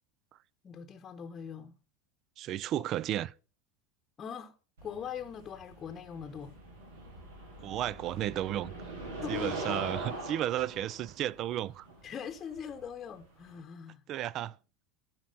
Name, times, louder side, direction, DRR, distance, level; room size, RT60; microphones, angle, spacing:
voice 1, 0.6-1.8 4.2-4.5 4.8-6.6 9.2-9.9 12.0-14.0, left 7 dB, 35° left, 0.9 m, -41 dB
voice 2, 2.4-3.3 7.6-8.7 9.3-11.9 14.1-14.6, right 12 dB, 45° right, 0.4 m, -33 dB
sound 1, 4.8-13.6, right 2 dB, 80° right, 3.4 m, -42 dB
12.5 x 4.6 x 5.4 m
hypercardioid pair, 85°, 0 cm